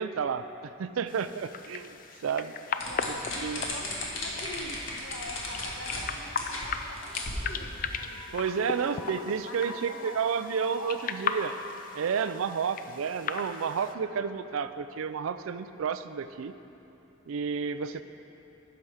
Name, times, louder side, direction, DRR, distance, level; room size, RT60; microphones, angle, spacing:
voice 1, 0.0-2.0 2.2-2.5 3.4-3.6 8.3-11.5 11.9-16.5 17.3-18.0, right 6 dB, 80° right, 12 dB, 0.4 m, -31 dB
sound 1, 1.1-13.9, left 5 dB, 40° left, 0.3 m, -38 dB
voice 2, 2.8-9.0 9.4-11.2 13.9-14.3, left 1 dB, 90° left, 2 dB, 1.0 m, -44 dB
sound 2, 2.8-6.0 6.4-6.7 7.0-7.9, left 2 dB, 70° left, 1.6 m, -35 dB
Wind instrument woodwind instrument, 7.9-12.1, left 4 dB, 10° left, 1.8 m, -49 dB
11.5 x 6.0 x 4.9 m, 3.0 s
head